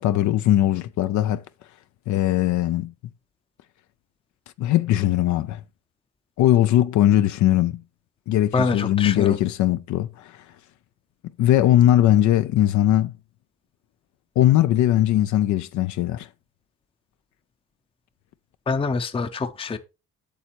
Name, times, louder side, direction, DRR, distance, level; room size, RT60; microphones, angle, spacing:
voice 1, 0.0-1.4 2.1-2.9 4.6-5.6 6.4-7.8 8.3-10.4 11.4-13.1 14.4-16.3, left 13 dB, 75° left, 0.5 m, -20 dB
voice 2, 8.5-9.4 18.7-19.8, left 4 dB, 20° left, 0.6 m, -25 dB
8.5 x 6.7 x 2.9 m
cardioid pair, 90°, 30 cm